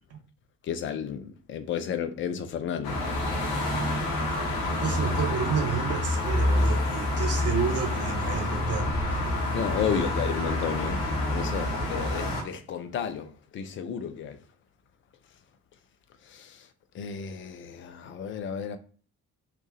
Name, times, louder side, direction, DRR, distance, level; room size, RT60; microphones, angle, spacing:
voice 1, 0.7-3.0 3.5-3.7 9.5-11.0 11.3-14.4 16.3-16.6 16.9-18.8, left 8 dB, 30° left, 0.3 m, -32 dB
sound 1, 2.8-12.4, left 1 dB, 65° left, 0.9 m, -27 dB
voice 2, 4.8-8.9 9.8-10.1, right 6 dB, 35° right, 0.5 m, -31 dB
2.9 x 2.1 x 3.1 m
figure-of-eight pair, 40°, 46 cm